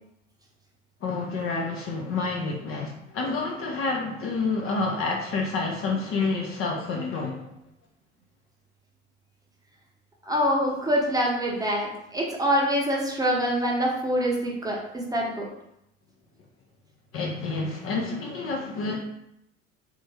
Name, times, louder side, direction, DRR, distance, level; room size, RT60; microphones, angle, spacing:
voice 1, 1.0-2.9 3.1-7.5 17.1-19.0, left 3 dB, 35° left, -1 dB, 0.6 m, -28 dB
voice 2, 10.3-15.5, equal, 10° right, -3 dB, 0.9 m, -25 dB
3.5 x 2.5 x 3.4 m, 0.81 s
figure-of-eight pair, 65°, 37 cm